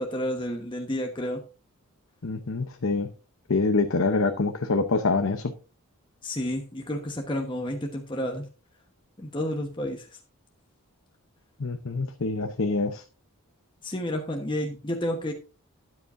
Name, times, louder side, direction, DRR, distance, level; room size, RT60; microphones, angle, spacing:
voice 1, 0.0-1.4 6.2-8.5 9.2-10.2 13.8-15.3, left 1 dB, 20° left, 2 dB, 1.1 m, -30 dB
voice 2, 2.2-3.1 3.5-5.5 11.6-13.0, left 3 dB, 65° left, 6 dB, 0.8 m, -25 dB
12.5 x 9.8 x 2.6 m, 0.33 s
head